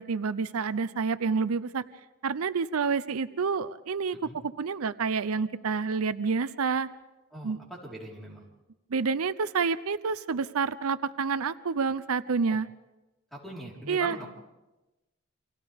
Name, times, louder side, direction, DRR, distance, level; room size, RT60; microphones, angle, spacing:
voice 1, 0.0-1.8 2.2-4.2 4.6-6.9 7.4-7.6 8.9-12.7 13.9-14.2, right 5 dB, 90° right, 14 dB, 0.6 m, -28 dB
voice 2, 7.3-8.5 12.5-12.6 13.3-14.3, right 1 dB, ahead, -3 dB, 4.2 m, -41 dB
30.0 x 25.5 x 3.6 m, 1.1 s
head